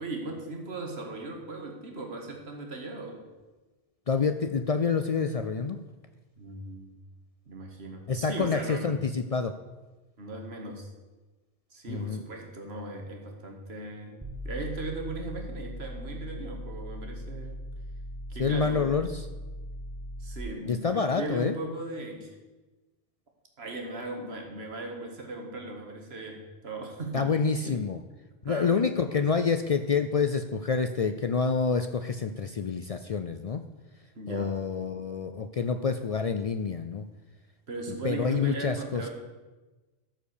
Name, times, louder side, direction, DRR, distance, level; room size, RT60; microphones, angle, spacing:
voice 1, 0.0-3.2 6.4-7.0 7.5-9.0 10.2-10.9 11.7-17.6 18.3-18.9 20.2-22.3 23.6-27.9 28.4-29.5 34.2-34.5 37.7-39.1, right 2 dB, 75° right, 2 dB, 1.9 m, -38 dB
voice 2, 4.1-5.8 8.1-9.5 11.9-12.2 18.4-19.2 20.7-21.6 27.1-28.0 28.4-33.6 34.3-37.1 38.0-39.1, left 5 dB, 50° left, 8 dB, 0.4 m, -27 dB
sound 1, 14.2-20.4, equal, 20° right, 1.1 m, -39 dB
13.0 x 5.1 x 6.6 m, 1.2 s
omnidirectional pair, 1.1 m